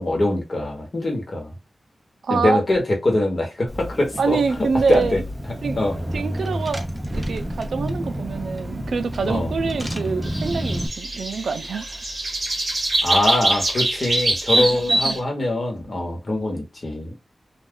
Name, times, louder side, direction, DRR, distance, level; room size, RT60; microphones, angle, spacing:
voice 1, 0.0-1.5 2.3-5.2 5.7-5.9 9.3-9.5 13.0-17.2, left 1 dB, 45° left, 1.1 m, -23 dB
voice 2, 2.2-2.6 4.2-5.2 5.6-5.8 6.1-6.9 7.1-12.0 13.1-13.2 14.6-15.2, right 5 dB, 80° right, 0.4 m, -25 dB
Car / Engine, 3.7-10.9, equal, 10° right, 0.5 m, -29 dB
sound 1, 10.2-15.2, right 1 dB, 40° right, 0.9 m, -24 dB
2.4 x 2.2 x 3.5 m
wide cardioid pair, 130°, 0 cm